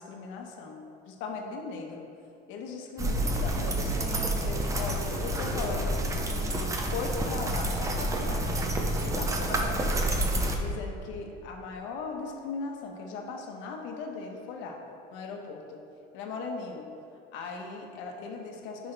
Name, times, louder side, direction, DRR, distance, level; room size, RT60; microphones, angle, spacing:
voice 1, 0.0-2.1 2.5-8.8 9.0-14.8 15.1-15.9 16.1-16.9 17.3-18.9, left 4 dB, 70° left, 2 dB, 1.1 m, -38 dB
sound 1, 3.0-10.5, right 1 dB, 15° right, 0.6 m, -29 dB
9.7 x 5.2 x 3.4 m, 2.6 s
cardioid pair, 155°, 20 cm